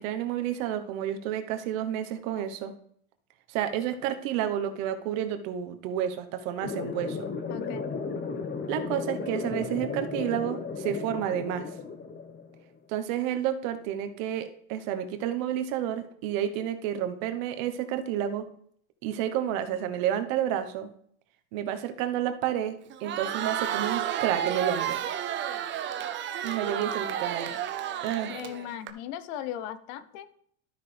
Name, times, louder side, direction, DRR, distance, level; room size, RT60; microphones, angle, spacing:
voice 1, 0.0-2.7 3.5-7.3 8.7-11.7 12.9-18.5 19.0-20.9 21.5-25.0 26.4-27.5 28.0-28.3, right 10 dB, 65° right, 9 dB, 1.1 m, -30 dB
sound 1, 6.6-12.6, left 4 dB, 25° left, 1.0 m, -35 dB
voice 2, 7.5-7.9 28.3-30.3, left 11 dB, 60° left, 13 dB, 0.8 m, -38 dB
Crowd, 22.9-28.9, right 10 dB, 25° right, 0.5 m, -31 dB
12.5 x 5.9 x 3.3 m, 0.65 s
supercardioid pair, 130°, 42 cm